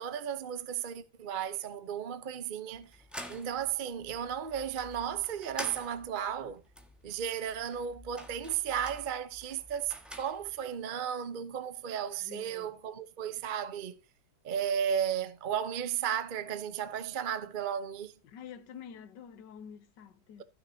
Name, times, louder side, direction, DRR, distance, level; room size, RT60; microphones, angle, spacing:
voice 1, 0.0-3.0 3.3-6.6 7.0-14.0 14.4-18.2, right 8 dB, 45° right, 0.6 m, -34 dB
sound 1, 2.7-10.7, equal, ahead, 1.4 m, -48 dB
voice 2, 12.2-12.7 18.2-20.4, left 8 dB, 85° left, 1.6 m, -48 dB
16.0 x 6.4 x 2.7 m
omnidirectional pair, 1.8 m